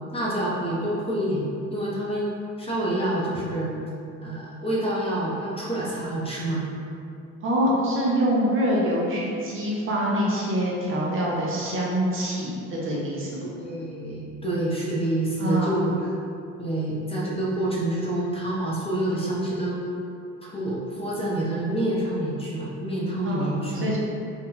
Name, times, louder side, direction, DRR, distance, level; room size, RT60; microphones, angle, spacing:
voice 1, 0.1-1.5 1.7-2.3 2.6-3.7 4.2-6.6 13.4-16.1 16.6-19.8 20.4-23.9, right 1 dB, 20° left, -6 dB, 0.6 m, -27 dB
voice 2, 7.4-13.5 15.4-15.8 23.2-23.4 23.7-24.0, equal, 40° right, -5 dB, 0.7 m, -25 dB
2.7 x 2.2 x 3.8 m, 2.5 s
cardioid pair, 105°, 31 cm